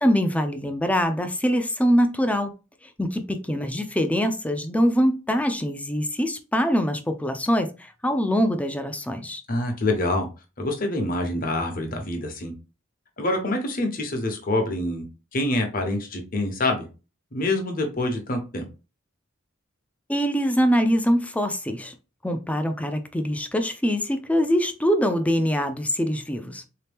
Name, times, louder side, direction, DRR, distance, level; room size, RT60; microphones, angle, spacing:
voice 1, 0.0-2.5 3.0-7.7 8.0-9.4 20.1-21.9 22.2-26.6, equal, 5° left, 0.4 m, -23 dB
voice 2, 9.5-10.3 10.6-12.5 13.2-15.0 15.3-16.8 17.3-18.6, left 2 dB, 45° left, 1.0 m, -26 dB
3.8 x 2.9 x 3.5 m
head